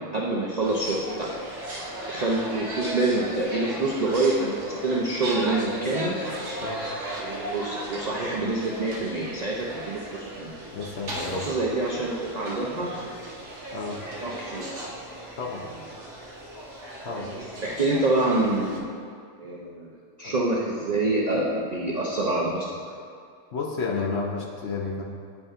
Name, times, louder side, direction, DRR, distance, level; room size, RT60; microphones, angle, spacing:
voice 1, 0.1-1.3 2.1-6.2 7.2-10.5 11.3-13.1 14.2-14.9 17.1-18.8 19.4-19.9 20.2-22.7, right 2 dB, 70° right, -3 dB, 0.3 m, -26 dB
sound 1, 0.6-18.8, right 1 dB, 55° right, 1.2 m, -36 dB
voice 2, 10.7-11.5 13.7-14.0 15.4-15.6 17.0-17.3 20.2-20.4 23.5-25.0, left 4 dB, 55° left, -1 dB, 0.8 m, -31 dB
9.3 x 5.3 x 2.5 m, 2.3 s
omnidirectional pair, 1.6 m